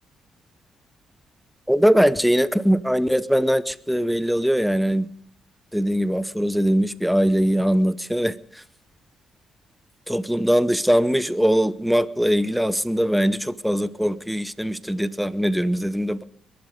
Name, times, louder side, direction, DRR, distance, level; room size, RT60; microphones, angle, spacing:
voice 1, 1.7-5.1 5.7-8.6 10.1-16.2, equal, ahead, 15 dB, 0.8 m, -21 dB
22.5 x 11.0 x 5.2 m, 0.65 s
cardioid pair, 90°, 0 cm